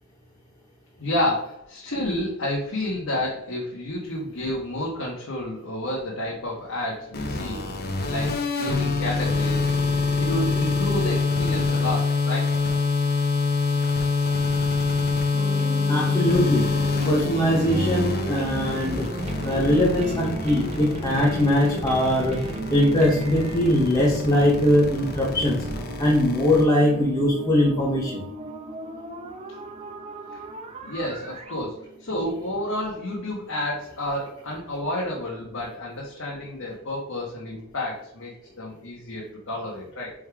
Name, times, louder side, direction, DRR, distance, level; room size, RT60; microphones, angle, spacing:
voice 1, 1.0-7.6 8.1-9.6 10.2-12.6 30.8-40.1, left 1 dB, 70° left, -4 dB, 1.4 m, -30 dB
sound 1, 7.1-26.6, left 3 dB, 50° left, 1.0 m, -25 dB
sound 2, 15.3-33.1, right 1 dB, 30° right, 0.8 m, -36 dB
voice 2, 15.9-16.7 17.0-19.1 19.4-22.4 22.7-25.6 26.0-28.2, left 1 dB, 20° left, -4 dB, 1.0 m, -21 dB
5.2 x 3.7 x 4.8 m, 0.70 s
head